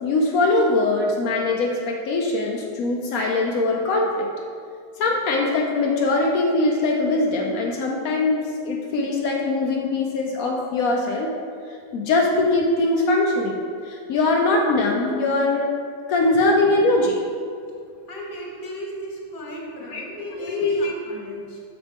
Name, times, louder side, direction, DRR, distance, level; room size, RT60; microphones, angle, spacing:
voice 1, 0.0-4.3 5.0-11.3 11.9-15.7 16.1-17.2 19.9-20.0 20.4-20.9, left 2 dB, 85° left, 0 dB, 0.7 m, -22 dB
voice 2, 18.1-21.6, equal, 30° left, -2 dB, 1.0 m, -35 dB
7.3 x 6.1 x 3.4 m, 2.3 s
omnidirectional pair, 2.2 m